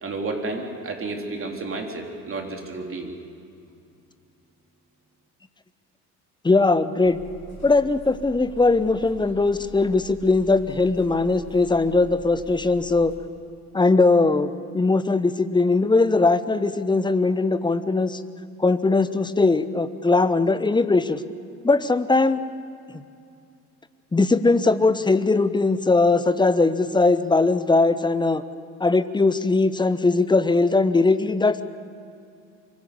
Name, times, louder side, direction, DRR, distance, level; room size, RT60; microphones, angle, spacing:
voice 1, 0.0-3.1, right 3 dB, 30° right, 2 dB, 3.6 m, -31 dB
voice 2, 6.4-7.2 7.6-13.1 13.7-18.2 18.6-21.2 21.6-22.4 22.9-23.0 24.1-28.4 28.8-31.6, left 3 dB, 10° left, 13 dB, 0.9 m, -20 dB
sound 1, 7.0-13.2, right 1 dB, 65° left, 6.6 m, -44 dB
24.0 x 16.0 x 8.5 m, 2.5 s
figure-of-eight pair, 60°, 45 cm